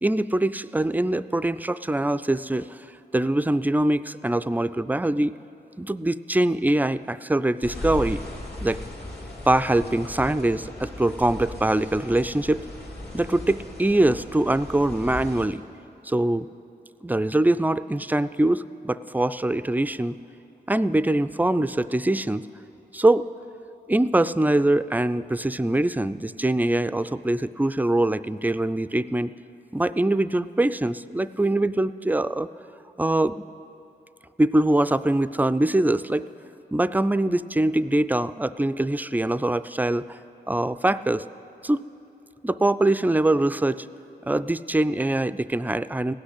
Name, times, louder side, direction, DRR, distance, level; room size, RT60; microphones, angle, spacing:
voice 1, 0.0-2.8 3.1-5.3 5.8-8.2 8.6-8.8 9.5-12.6 13.1-15.7 16.0-16.5 17.0-20.2 20.7-22.5 22.9-23.3 23.9-29.3 29.7-32.5 33.0-33.5 34.4-36.3 36.7-40.2 40.5-41.2 41.6-41.8 42.4-43.9 44.2-46.1, right 1 dB, 10° right, 14 dB, 0.3 m, -23 dB
sound 1, 7.6-15.5, left 1 dB, 70° left, 2.2 m, -37 dB
16.5 x 6.3 x 9.9 m, 2.8 s
cardioid pair, 55°, 18 cm